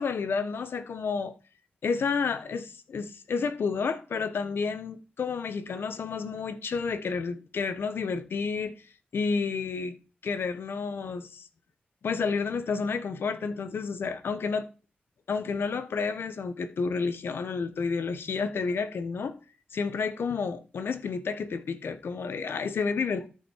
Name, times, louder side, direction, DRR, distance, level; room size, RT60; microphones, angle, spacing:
voice 1, 0.0-1.3 1.8-8.7 9.1-10.0 10.2-11.4 12.0-14.7 15.3-19.4 19.7-23.3, left 5 dB, 85° left, 0.9 m, -30 dB
13.5 x 5.0 x 4.4 m
wide cardioid pair, 100°, 4 cm